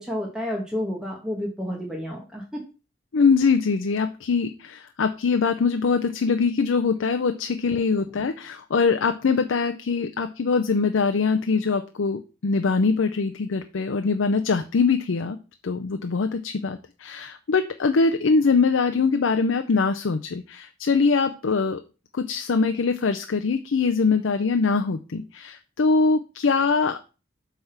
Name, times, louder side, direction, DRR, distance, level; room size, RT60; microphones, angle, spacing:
voice 1, 0.0-2.6, left 1 dB, 5° right, -2 dB, 1.3 m, -30 dB
voice 2, 3.1-15.4 15.6-21.8 22.1-27.0, left 4 dB, 90° left, 8 dB, 0.5 m, -23 dB
7.9 x 3.5 x 5.7 m, 0.33 s
head